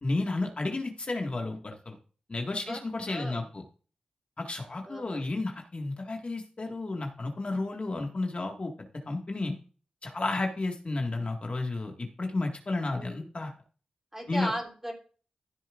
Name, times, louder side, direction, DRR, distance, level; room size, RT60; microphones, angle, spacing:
voice 1, 0.0-2.0 2.3-3.6 4.4-9.5 10.0-13.5 14.3-14.5, left 2 dB, 50° left, 2 dB, 1.8 m, -32 dB
voice 2, 2.5-3.5 4.8-5.3 12.9-13.3 14.1-14.9, equal, 15° right, 2 dB, 3.5 m, -37 dB
14.5 x 7.3 x 2.5 m, 0.40 s
cardioid pair, 45°, 3 cm